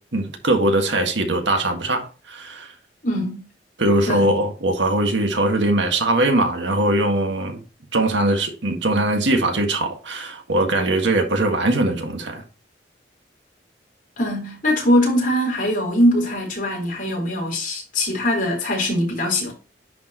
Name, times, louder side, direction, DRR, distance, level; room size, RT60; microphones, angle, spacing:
voice 1, 0.1-2.7 3.8-7.6 7.9-12.4, right 1 dB, 85° right, 1.8 m, -21 dB
voice 2, 3.0-3.4 4.1-4.3 14.2-19.5, left 1 dB, 50° left, 4.3 m, -21 dB
10.5 x 4.8 x 3.0 m
head